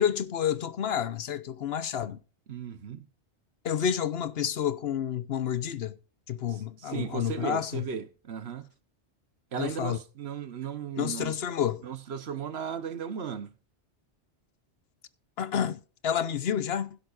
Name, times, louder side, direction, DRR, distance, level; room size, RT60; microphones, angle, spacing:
voice 1, 0.0-2.2 3.6-5.9 6.3-7.9 9.6-10.0 10.9-11.8 15.4-17.0, left 9 dB, 65° left, 1.0 m, -29 dB
voice 2, 2.5-3.1 6.5-8.7 9.5-11.4 11.8-13.5, right 7 dB, 65° right, 1.2 m, -36 dB
16.5 x 10.5 x 2.5 m
omnidirectional pair, 1.2 m